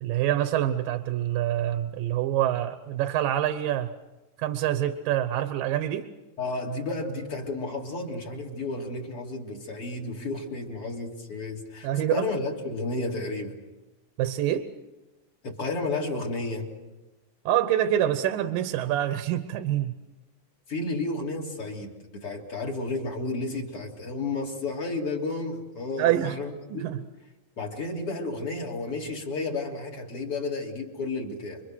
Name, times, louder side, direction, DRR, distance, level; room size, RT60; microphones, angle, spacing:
voice 1, 0.0-3.9 4.4-6.1 11.8-12.3 14.2-14.7 17.5-19.9 26.0-26.4 26.7-27.0, right 12 dB, 80° right, 10 dB, 2.7 m, -26 dB
voice 2, 6.4-13.6 15.4-16.7 20.7-27.0 27.6-31.6, left 3 dB, 40° left, 0 dB, 3.8 m, -32 dB
29.5 x 24.0 x 6.3 m, 1.1 s
omnidirectional pair, 3.9 m